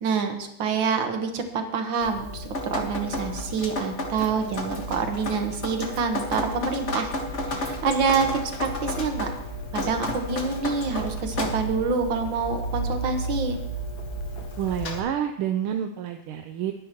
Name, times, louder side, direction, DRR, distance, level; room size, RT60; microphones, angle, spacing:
voice 1, 0.0-7.1 7.4-9.3 9.7-13.6, right 5 dB, 65° right, 5 dB, 2.1 m, -27 dB
Drip, 2.0-15.0, equal, 35° left, 1.6 m, -32 dB
sound 1, 7.2-14.8, left 4 dB, 55° left, 1.5 m, -41 dB
voice 2, 14.6-16.7, right 9 dB, 80° right, 6 dB, 1.5 m, -28 dB
21.0 x 10.5 x 3.0 m, 0.81 s
omnidirectional pair, 2.4 m